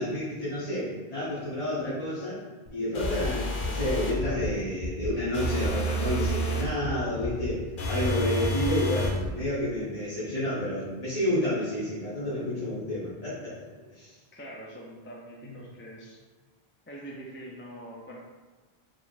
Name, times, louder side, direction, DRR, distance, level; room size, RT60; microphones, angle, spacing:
voice 1, 0.0-2.4 2.7-13.6 13.9-14.1, left 1 dB, 40° left, -11 dB, 1.3 m, -30 dB
sound 1, 2.7-2.8 3.0-3.3 3.6-3.9 4.2-4.5 4.8-5.1 5.4-5.7 6.0-6.3 6.6-6.9 7.2-7.5 7.8-8.1 8.4-8.7 9.0-9.3, equal, 65° right, 1.3 m, -34 dB
sound 2, 2.9-4.2 5.3-6.7 7.8-9.2, equal, 55° left, 0.8 m, -30 dB
voice 2, 14.3-16.2 16.9-18.2, right 1 dB, 20° left, -4 dB, 0.4 m, -44 dB
4.7 x 3.8 x 2.5 m, 1.3 s
omnidirectional pair, 1.1 m